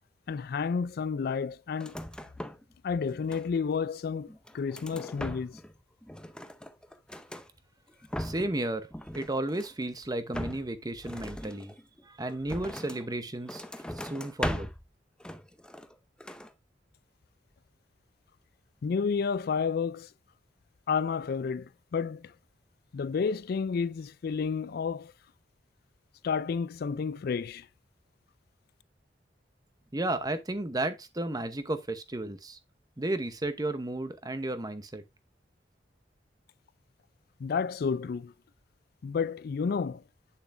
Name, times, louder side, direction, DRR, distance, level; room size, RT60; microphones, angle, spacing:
voice 1, 0.3-2.0 2.8-5.6 18.8-20.1 20.9-22.3 22.9-25.1 26.2-27.7 37.4-38.3 39.0-40.0, left 5 dB, 60° left, 0.4 m, -31 dB
sound 1, 1.7-2.7 3.0-3.8 4.3-5.7 6.0-7.5 7.9-8.6 8.9-9.8 10.3-13.1 13.5-14.9 15.2-16.5, equal, 5° left, 0.5 m, -39 dB
voice 2, 8.2-8.9 9.1-11.7 12.1-13.6 14.0-14.7 29.9-32.6 33.0-35.0, right 1 dB, 20° right, 0.8 m, -33 dB
8.3 x 6.9 x 2.6 m
head